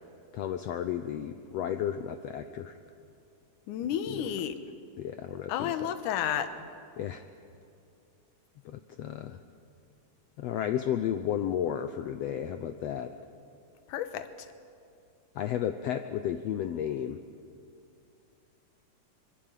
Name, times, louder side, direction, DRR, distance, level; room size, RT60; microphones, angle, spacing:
voice 1, 0.3-2.8 4.1-4.3 5.0-5.7 7.0-7.2 8.6-9.4 10.4-13.1 15.3-17.2, left 10 dB, 90° left, 9 dB, 1.4 m, -33 dB
voice 2, 3.7-4.6 5.5-6.7 13.9-14.5, left 9 dB, 75° left, 10 dB, 2.5 m, -32 dB
25.0 x 22.0 x 7.4 m, 2.5 s
omnidirectional pair, 3.8 m